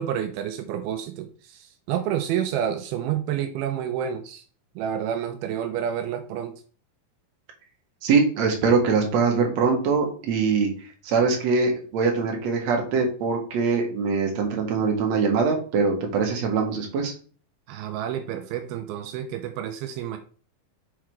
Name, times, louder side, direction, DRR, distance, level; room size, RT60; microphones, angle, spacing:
voice 1, 0.0-4.4 4.8-6.6 17.7-20.2, right 9 dB, 85° right, 7 dB, 2.6 m, -29 dB
voice 2, 8.0-10.7 11.0-17.1, right 4 dB, 55° right, 2 dB, 2.4 m, -23 dB
6.5 x 4.8 x 4.6 m, 0.40 s
omnidirectional pair, 4.4 m